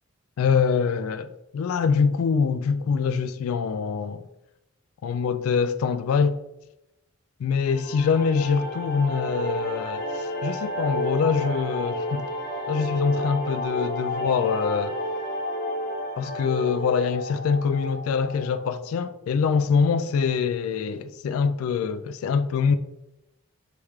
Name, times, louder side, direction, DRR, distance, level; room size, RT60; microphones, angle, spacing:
voice 1, 0.4-4.3 5.0-6.4 7.4-12.3 12.7-15.0 16.2-22.8, left 6 dB, 75° left, 0.3 m, -24 dB
sound 1, 7.7-18.7, equal, 45° left, 0.9 m, -31 dB
4.7 x 3.2 x 3.5 m
head